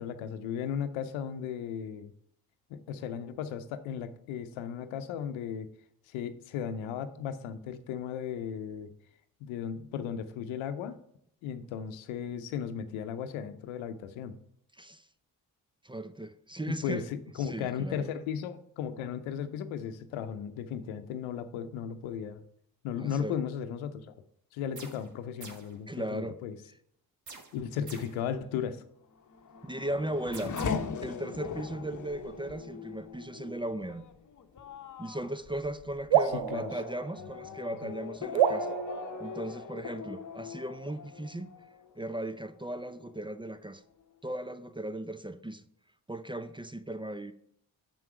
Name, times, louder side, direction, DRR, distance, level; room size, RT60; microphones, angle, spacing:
voice 1, 0.0-2.1 2.7-5.7 6.1-8.9 9.4-11.0 11.4-14.4 16.7-22.4 22.8-24.1 24.5-26.6 27.5-28.8 36.3-36.7 37.8-37.9, left 8 dB, 80° left, 11 dB, 0.8 m, -36 dB
voice 2, 15.8-17.1 17.4-18.1 23.0-23.3 25.9-26.4 29.6-30.6 31.0-34.0 35.0-38.7 39.2-41.5 42.0-43.8 44.2-45.6 46.1-47.3, right 1 dB, 10° right, 11 dB, 0.5 m, -37 dB
sound 1, 24.8-25.1 25.4-25.8 27.3-28.2 30.3-30.6, right 3 dB, 40° right, 1.5 m, -47 dB
Race car auto racing / Accelerating revving vroom, 29.1-42.4 42.8-43.5, left 6 dB, 40° left, 0.9 m, -40 dB
sound 2, 36.1-37.8 38.3-40.0, right 10 dB, 70° right, 0.7 m, -29 dB
6.8 x 6.1 x 4.8 m, 0.69 s
supercardioid pair, 50°, 46 cm